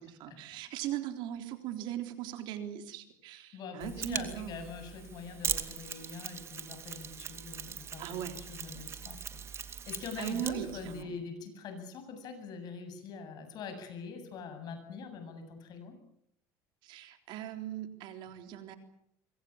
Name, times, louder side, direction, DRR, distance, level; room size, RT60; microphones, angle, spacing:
voice 1, 0.0-4.7 8.0-8.4 10.2-11.2 16.8-18.8, right 12 dB, 65° right, 7 dB, 3.7 m, -39 dB
voice 2, 3.5-16.0, left 5 dB, 55° left, 7 dB, 8.0 m, -44 dB
Mechanisms, 3.8-11.0, right 7 dB, 30° right, 2.4 m, -40 dB
25.5 x 24.5 x 7.3 m, 0.72 s
cardioid pair, 125°, 8 cm